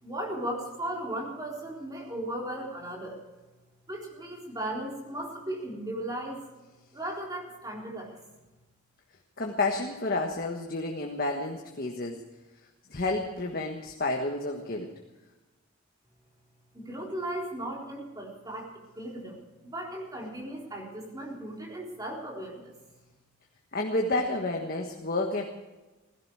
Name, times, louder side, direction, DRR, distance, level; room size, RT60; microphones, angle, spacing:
voice 1, 0.0-3.2 3.9-6.4 6.9-8.2 16.7-22.7, right 1 dB, 15° right, -2 dB, 4.0 m, -36 dB
voice 2, 9.4-12.2 12.9-14.9 23.7-25.4, left 2 dB, 45° left, 2 dB, 1.4 m, -30 dB
17.0 x 15.5 x 4.8 m, 1.1 s
head